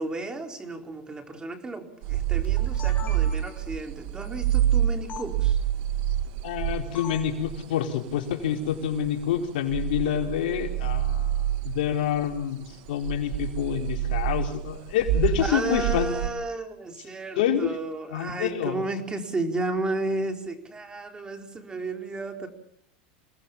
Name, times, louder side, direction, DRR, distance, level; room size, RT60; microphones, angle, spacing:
voice 1, 0.0-5.6 15.4-22.5, right 2 dB, 15° right, 5 dB, 4.2 m, -33 dB
sound 1, 2.0-7.6 8.2-8.3 8.7-9.4 9.7-16.3, right 11 dB, 65° right, 1.6 m, -27 dB
sound 2, 2.4-3.7 5.1-5.3 6.9-7.4, left 9 dB, 30° left, 5.4 m, -41 dB
voice 2, 6.4-16.1 17.4-17.7 18.1-18.8, left 9 dB, 80° left, 3 dB, 4.4 m, -27 dB
28.0 x 19.5 x 7.3 m, 0.67 s
supercardioid pair, 120°, 5 cm